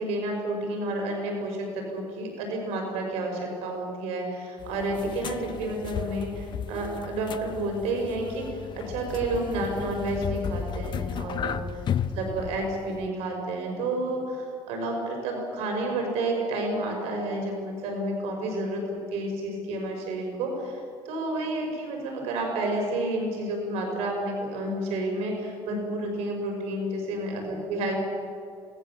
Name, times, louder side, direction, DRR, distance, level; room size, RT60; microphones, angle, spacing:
voice 1, 0.0-8.5 8.7-11.6 12.1-28.0, right 2 dB, 90° right, 2 dB, 5.6 m, -30 dB
sound 1, 4.6-13.1, left 8 dB, 45° left, 0.8 m, -34 dB
27.0 x 19.0 x 7.5 m, 2.5 s
cardioid pair, 115°, 10 cm